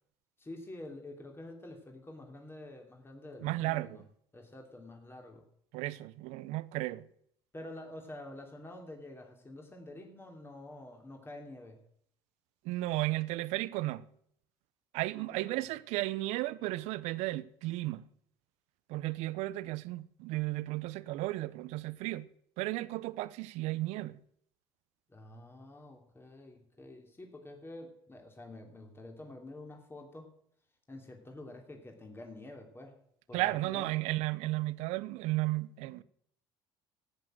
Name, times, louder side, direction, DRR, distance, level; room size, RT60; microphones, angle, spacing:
voice 1, 0.4-4.0 4.3-5.4 7.5-11.8 15.3-15.5 25.1-30.3 30.9-32.9 33.3-33.9, left 1 dB, 20° left, 2.9 m, -48 dB
voice 2, 3.4-4.1 5.7-7.1 12.6-14.0 14.9-18.1 18.9-22.3 22.6-24.2 33.3-36.0, right 18 dB, 70° right, 0.7 m, -34 dB
13.5 x 8.7 x 7.7 m
hypercardioid pair, 70°, 12 cm